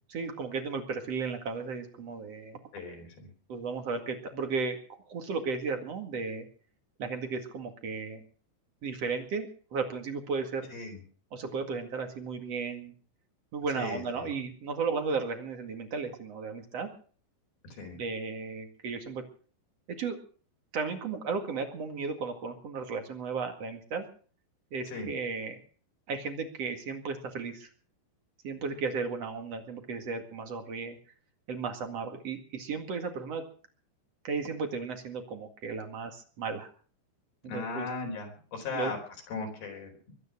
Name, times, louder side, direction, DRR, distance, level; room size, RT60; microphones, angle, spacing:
voice 1, 0.1-2.6 3.5-4.8 5.1-6.5 7.0-8.2 8.8-10.7 11.3-12.9 13.5-16.9 17.8-19.2 20.0-20.2 20.7-24.1 24.7-25.6 26.1-27.7 28.4-31.0 31.5-33.4 34.2-36.7 37.4-37.9 38.7-39.0, right 4 dB, 45° right, 5 dB, 2.4 m, -34 dB
voice 2, 2.7-3.3 10.7-11.0 13.8-14.3 17.7-18.0 24.9-25.1 37.5-39.0 39.3-39.9, left 4 dB, 55° left, 3 dB, 6.0 m, -37 dB
23.0 x 9.7 x 6.0 m, 0.43 s
omnidirectional pair, 5.0 m